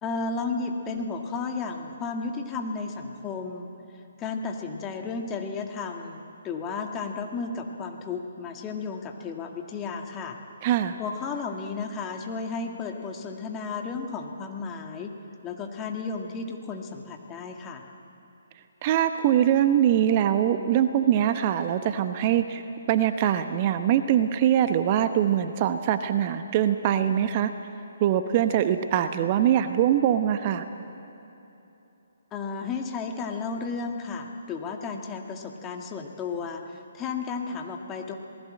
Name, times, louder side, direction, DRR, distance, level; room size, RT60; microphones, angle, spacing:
voice 1, 0.0-3.7 4.2-10.4 11.0-15.1 15.4-17.8 32.3-38.1, left 4 dB, 20° left, 3 dB, 1.9 m, -33 dB
voice 2, 10.6-11.0 18.8-22.6 22.9-27.5 28.0-30.7, right 10 dB, 35° right, 9 dB, 0.9 m, -23 dB
27.0 x 19.0 x 7.7 m, 3.0 s
figure-of-eight pair, 135°, 0 cm